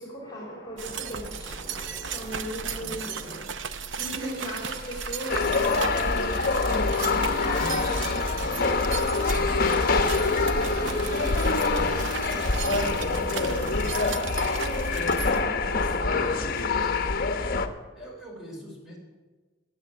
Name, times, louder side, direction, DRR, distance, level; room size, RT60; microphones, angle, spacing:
voice 1, 0.0-3.4 4.0-6.9 7.2-11.7 12.6-13.7 14.3-17.3, equal, 20° left, -2 dB, 3.5 m, -39 dB
sound 1, 0.8-15.4, right 6 dB, 75° right, 0.8 m, -36 dB
voice 2, 2.6-3.4 7.5-7.8 12.6-13.8 17.9-19.0, left 1 dB, ahead, -3 dB, 4.0 m, -42 dB
Drill, 4.2-13.4, right 1 dB, 55° right, 3.9 m, -44 dB
sound 2, 5.3-17.7, left 3 dB, 50° left, 1.0 m, -25 dB
17.5 x 7.6 x 8.6 m, 1.3 s
head